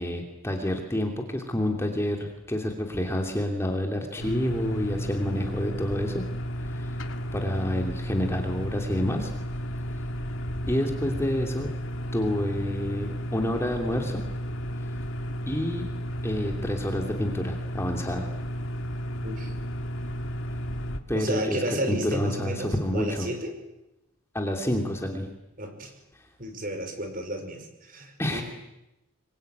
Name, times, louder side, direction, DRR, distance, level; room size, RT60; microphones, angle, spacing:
voice 1, 0.0-6.2 6.6-7.0 7.3-9.3 10.7-11.7 12.1-14.2 15.5-15.9 16.2-18.3 21.1-21.6 21.9-23.3 24.3-25.3 28.2-28.4, left 1 dB, 10° left, 3 dB, 2.8 m, -28 dB
sound 1, 4.2-21.0, equal, 65° left, 2.1 m, -33 dB
voice 2, 19.2-19.5 21.1-23.5 25.6-25.9 26.4-28.4, right 1 dB, 40° right, 6 dB, 5.3 m, -32 dB
25.5 x 24.0 x 9.3 m, 0.92 s
head